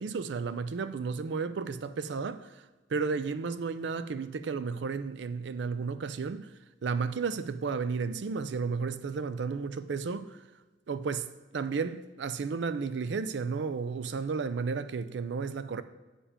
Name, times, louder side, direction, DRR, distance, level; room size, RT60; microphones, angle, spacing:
voice 1, 0.0-2.5 2.9-6.5 6.8-10.4 10.9-11.3 11.5-15.8, right 5 dB, 75° right, 0.4 m, -33 dB
8.7 x 5.1 x 5.0 m
head